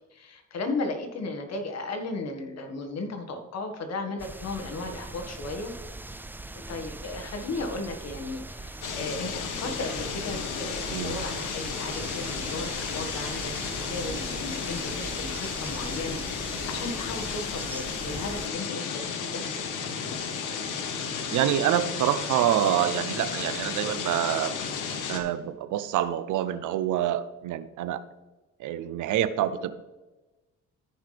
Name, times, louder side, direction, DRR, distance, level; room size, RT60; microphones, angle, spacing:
voice 1, 0.1-5.7 6.7-19.4, left 3 dB, 60° left, 4 dB, 1.7 m, -35 dB
sound 1, 4.2-18.5, right 2 dB, 5° right, 0.4 m, -40 dB
sound 2, 8.8-25.2, left 6 dB, 85° left, 1.3 m, -33 dB
voice 2, 10.9-11.2 21.3-24.5 25.1-28.0 28.6-29.7, right 11 dB, 80° right, 14 dB, 0.7 m, -26 dB
14.0 x 5.6 x 3.4 m, 1.1 s
cardioid pair, 90°, 30 cm